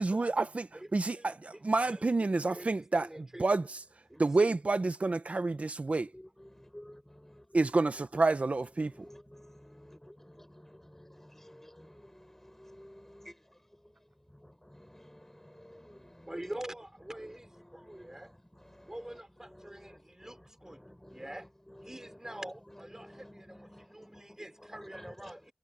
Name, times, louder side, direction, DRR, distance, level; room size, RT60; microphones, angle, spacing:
voice 1, 0.0-3.8 4.2-6.1 7.5-8.9, right 3 dB, 55° right, 1.4 m, -29 dB
voice 2, 1.1-2.1 2.5-3.5 4.1-4.6 16.3-18.3 18.8-20.8 21.1-21.5 21.8-25.5, right 1 dB, 20° right, 4.9 m, -45 dB
voice 3, 6.1-7.6 8.8-13.9 14.3-16.3 17.5-21.5 21.7-22.4 22.9-25.5, left 1 dB, 10° left, 6.5 m, -54 dB
wide cardioid pair, 50°, 3 cm